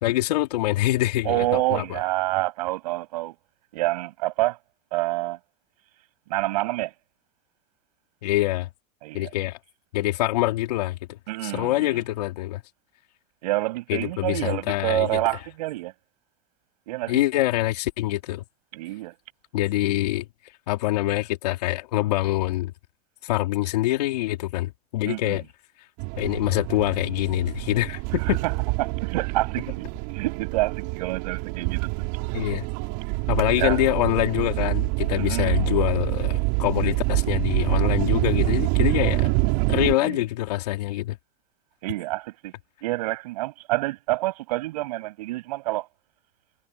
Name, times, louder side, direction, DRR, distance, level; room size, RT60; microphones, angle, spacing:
voice 1, 0.0-1.8 8.2-8.7 9.1-9.6 9.9-12.6 13.9-15.1 17.1-18.4 19.5-20.3 20.7-22.7 23.2-25.4 26.2-28.4 32.3-32.7 33.3-39.3 39.7-41.2, left 16 dB, 80° left, 3.7 m, -25 dB
voice 2, 1.2-3.4 3.7-4.6 4.9-5.4 6.3-7.0 9.0-9.3 11.3-12.0 13.4-15.9 16.9-17.2 18.7-19.2 25.0-25.4 28.1-32.1 33.5-33.8 35.2-35.7 40.0-40.2 41.8-42.5 42.8-45.9, right 19 dB, 70° right, 7.7 m, -28 dB
sound 1, 26.0-39.9, right 27 dB, 55° right, 4.6 m, -26 dB
supercardioid pair, 150°, 20 cm